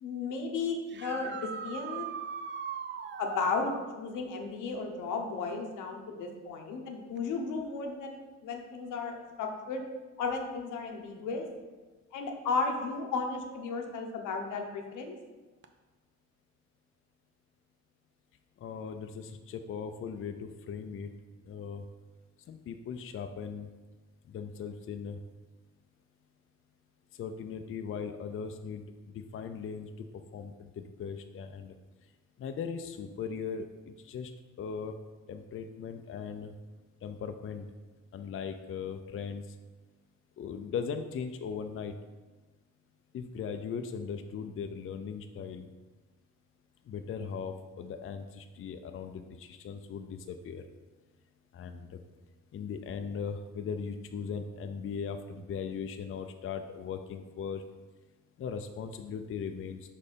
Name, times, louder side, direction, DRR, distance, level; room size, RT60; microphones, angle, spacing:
voice 1, 0.0-1.4 1.6-2.1 3.2-9.8 10.2-11.5 12.1-15.1, left 4 dB, 85° left, 3 dB, 1.0 m, -34 dB
sound 1, 0.9-3.9 7.2-7.3 9.3-9.4 15.6-15.7, right 6 dB, 40° right, 0.5 m, -39 dB
voice 2, 18.6-21.1 21.5-21.8 22.5-23.7 24.3-25.2 27.2-28.8 29.1-30.1 30.3-31.7 32.4-34.3 34.6-34.9 35.3-36.5 37.0-37.7 38.1-39.4 40.4-42.0 43.1-45.7 46.9-50.6 51.5-52.0 52.5-57.6 58.4-59.9, left 6 dB, 45° left, 7 dB, 0.5 m, -38 dB
5.4 x 4.2 x 5.1 m, 1.2 s
cardioid pair, 90°, 30 cm